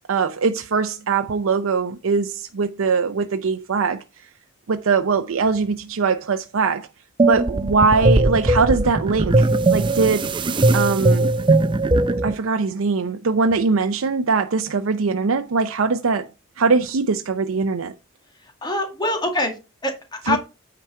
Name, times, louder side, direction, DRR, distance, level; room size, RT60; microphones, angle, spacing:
voice 1, 0.1-4.0 4.7-6.9 7.2-10.3 10.7-11.3 12.2-16.3 16.6-17.9 20.3-20.4, right 4 dB, 90° right, 0.6 m, -21 dB
sound 1, 7.2-12.3, right 2 dB, 25° right, 0.4 m, -19 dB
voice 2, 18.4-20.4, left 1 dB, 20° left, 2.0 m, -25 dB
9.2 x 4.8 x 4.4 m
head